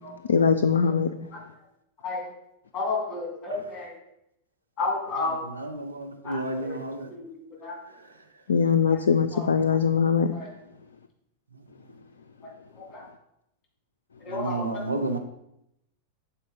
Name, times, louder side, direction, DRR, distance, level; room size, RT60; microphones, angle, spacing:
voice 1, 0.3-1.1 8.5-10.3, left 6 dB, 70° left, 0.3 m, -21 dB
voice 2, 2.7-3.8 4.8-5.4 6.3-6.4 7.1-7.2 7.6-7.7 14.3-14.7, left 3 dB, 25° left, 3.0 m, -29 dB
voice 3, 5.2-7.1 14.3-15.2, right 2 dB, 80° right, 0.9 m, -31 dB
7.8 x 4.4 x 5.2 m
figure-of-eight pair, 90°, 0 cm